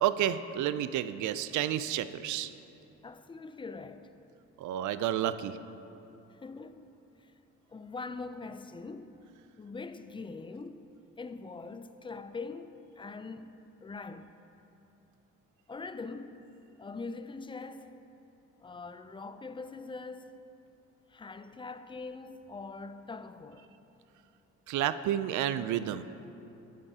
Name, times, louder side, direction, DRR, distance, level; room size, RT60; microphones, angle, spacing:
voice 1, 0.0-2.5 4.6-5.6 24.7-26.0, right 11 dB, 75° right, 0.4 m, -30 dB
voice 2, 3.0-4.1 6.3-7.3 7.7-9.2 9.6-10.9 11.2-13.6 13.8-14.3 15.7-16.5 16.8-18.0 18.6-20.4 21.1-23.7, left 4 dB, 15° left, 0.3 m, -43 dB
11.5 x 8.7 x 2.8 m
cardioid pair, 90°, 30 cm